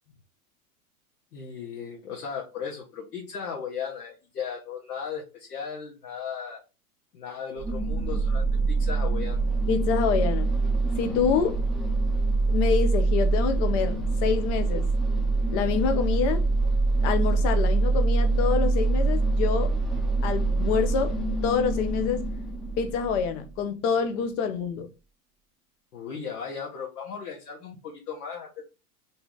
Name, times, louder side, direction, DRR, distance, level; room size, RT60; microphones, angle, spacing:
voice 1, 1.3-6.6 7.1-9.4 25.9-28.6, left 6 dB, 80° left, 1.2 m, -36 dB
sound 1, 7.6-23.5, right 3 dB, ahead, 0.5 m, -25 dB
voice 2, 9.7-10.5 11.0-11.6 12.5-14.9 15.5-16.4 17.0-19.7 20.2-21.1 21.4-22.2 22.8-24.9, left 6 dB, 50° left, 0.7 m, -26 dB
2.8 x 2.7 x 3.6 m
hypercardioid pair, 110°, 46 cm